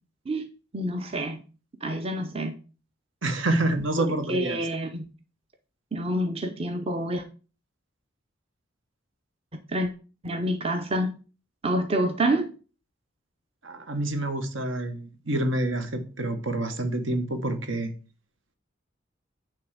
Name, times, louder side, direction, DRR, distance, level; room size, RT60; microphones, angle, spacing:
voice 1, 0.7-1.4 1.8-2.5 4.0-5.0 5.9-7.2 9.7-9.9 10.2-11.1 11.6-12.5, right 1 dB, 30° right, 0.8 m, -27 dB
voice 2, 3.2-4.7 13.6-17.9, right 1 dB, 75° right, 1.4 m, -27 dB
9.4 x 3.5 x 6.5 m
head